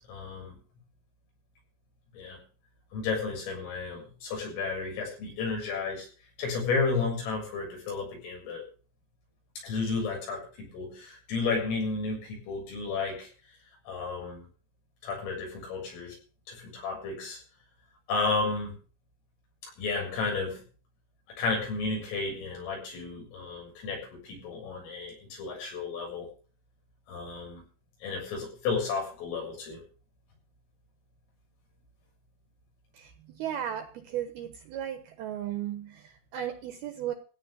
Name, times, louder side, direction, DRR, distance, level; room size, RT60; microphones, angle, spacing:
voice 1, 0.1-0.6 2.1-2.4 2.9-6.1 6.4-8.7 9.6-13.3 13.9-14.4 15.0-16.2 16.5-17.4 18.1-18.7 19.6-20.6 21.4-26.3 27.1-27.6 28.0-29.8, left 4 dB, 80° left, -1 dB, 9.7 m, -32 dB
voice 2, 32.9-37.1, right 10 dB, 70° right, 8 dB, 2.5 m, -36 dB
16.0 x 6.8 x 7.9 m, 0.38 s
omnidirectional pair, 5.8 m